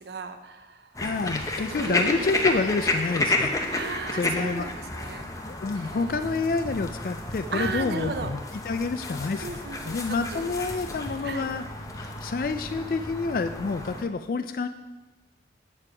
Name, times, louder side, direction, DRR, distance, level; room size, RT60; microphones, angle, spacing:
voice 1, 0.0-0.9 1.7-2.3 3.7-5.4 5.8-6.4 7.5-8.3 9.4-10.5 11.2-11.5, right 4 dB, 70° right, 8 dB, 0.7 m, -35 dB
sound 1, 0.9-14.0, left 2 dB, 20° left, 0.7 m, -31 dB
voice 2, 1.0-3.5 4.1-4.7 5.5-11.6 12.0-14.7, left 4 dB, 50° left, 9 dB, 0.3 m, -28 dB
8.6 x 6.7 x 4.8 m, 1.1 s
head